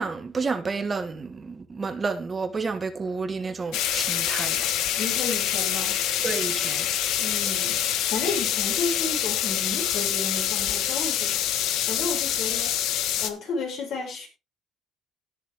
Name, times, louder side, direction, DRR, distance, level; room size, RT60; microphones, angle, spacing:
voice 1, 0.0-4.6 6.2-6.9, right 4 dB, 25° right, 1.4 m, -30 dB
sound 1, 3.7-13.3, left 11 dB, 75° left, 1.3 m, -26 dB
voice 2, 5.0-6.0 7.2-11.5 11.9-12.7 13.2-14.3, left 3 dB, 60° left, 6.0 m, -32 dB
18.0 x 6.6 x 3.5 m
cardioid pair, 135°, 0 cm